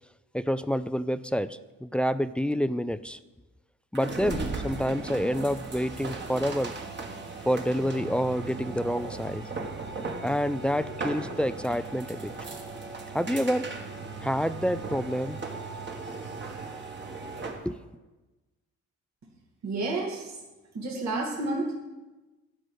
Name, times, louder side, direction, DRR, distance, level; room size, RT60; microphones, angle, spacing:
voice 1, 0.3-3.2 3.9-6.7 7.4-9.4 10.2-12.3 13.1-13.7 14.2-15.4 17.7-17.8, equal, 5° left, 14 dB, 0.3 m, -28 dB
sound 1, 3.9-17.7, right 3 dB, 35° right, 1.7 m, -37 dB
voice 2, 19.6-20.3 20.7-21.7, right 2 dB, 65° right, -2 dB, 2.4 m, -30 dB
12.0 x 5.0 x 8.1 m, 1.1 s
cardioid pair, 90°, 30 cm